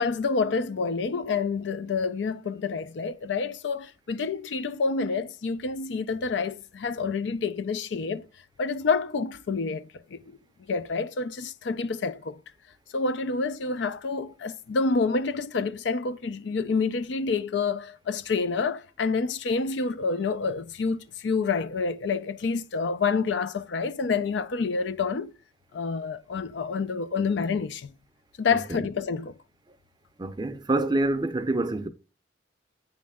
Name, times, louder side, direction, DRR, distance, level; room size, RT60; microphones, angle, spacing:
voice 1, 0.0-8.3 8.6-10.4 10.7-12.4 12.9-25.3 25.7-27.9 28.4-29.3, left 4 dB, 75° left, 0.4 m, -28 dB
voice 2, 28.5-28.9 30.2-31.9, right 2 dB, 25° right, 0.4 m, -27 dB
8.5 x 3.2 x 3.4 m
head